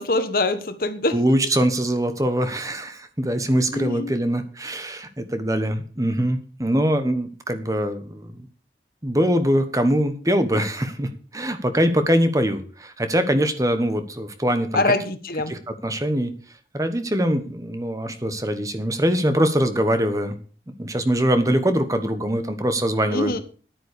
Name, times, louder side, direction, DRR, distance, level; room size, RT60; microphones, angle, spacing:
voice 1, 0.0-1.2 3.7-4.1 14.7-15.5 23.1-23.4, left 2 dB, 55° left, 10 dB, 1.4 m, -23 dB
voice 2, 1.1-8.5 9.0-14.8 15.5-16.3 16.7-20.4 20.8-23.3, equal, 20° right, 9 dB, 1.2 m, -23 dB
11.0 x 9.2 x 6.8 m, 0.41 s
head